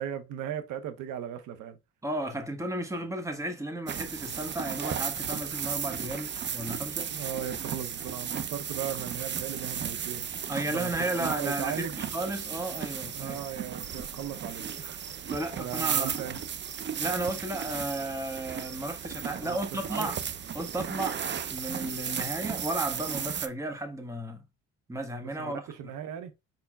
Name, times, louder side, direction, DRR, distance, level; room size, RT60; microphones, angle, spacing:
voice 1, 0.0-1.8 5.3-5.4 7.1-10.3 10.5-12.0 13.1-15.0 15.6-16.4 19.4-20.1 25.4-26.3, right 9 dB, 85° right, 0.7 m, -37 dB
voice 2, 2.0-7.1 10.5-13.4 15.3-16.2 16.9-20.2 20.5-24.4 24.9-25.6, right 1 dB, 10° right, 1.1 m, -34 dB
sound 1, 3.9-23.5, right 8 dB, 40° right, 0.5 m, -35 dB
5.0 x 4.6 x 2.2 m
cardioid pair, 90°, 30 cm